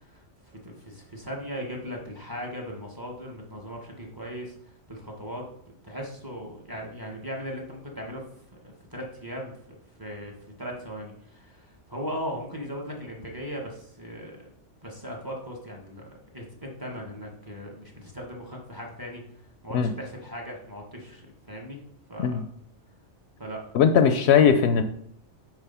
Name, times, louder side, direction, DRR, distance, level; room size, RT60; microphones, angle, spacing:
voice 1, 0.5-4.5 4.9-5.5 5.8-8.2 8.6-9.5 10.0-10.3 10.6-14.5 14.8-16.0 16.3-19.2 19.6-21.8 22.1-22.4 23.4-23.6, equal, 20° right, -1 dB, 1.2 m, -38 dB
voice 2, 23.7-24.8, left 7 dB, 70° left, 8 dB, 0.8 m, -19 dB
8.0 x 3.2 x 5.5 m, 0.72 s
omnidirectional pair, 1.2 m